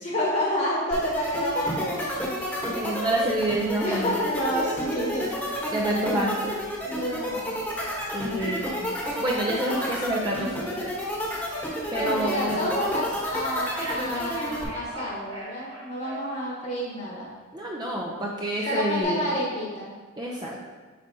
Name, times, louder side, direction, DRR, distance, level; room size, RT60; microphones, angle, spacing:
voice 1, 0.0-2.1 3.8-5.2 6.9-7.6 11.9-17.3 18.7-19.9, equal, 40° left, -5 dB, 1.2 m, -29 dB
sound 1, 0.9-14.6, equal, 10° left, 1.1 m, -30 dB
voice 2, 2.7-4.2 4.5-4.6 5.7-6.5 8.1-8.8 9.2-10.9 11.9-12.6 17.5-19.3 20.2-20.6, right 1 dB, 20° right, -3 dB, 0.5 m, -28 dB
Telephone, 8.4-8.9 13.7-16.6 18.5-19.0, right 2 dB, 60° right, 2.0 m, -39 dB
8.2 x 4.9 x 2.7 m, 1.3 s
head